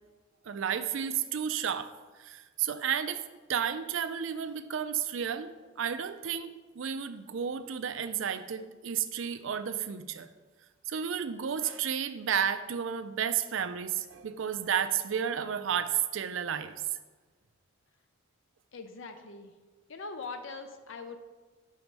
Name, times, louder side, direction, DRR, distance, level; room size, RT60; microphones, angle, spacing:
voice 1, 0.5-1.9 2.2-3.2 3.5-10.3 10.9-16.7, right 8 dB, 65° right, 11 dB, 0.4 m, -32 dB
voice 2, 18.7-19.5 19.9-21.2, left 4 dB, 65° left, 7 dB, 0.5 m, -41 dB
6.4 x 4.6 x 5.2 m, 1.3 s
head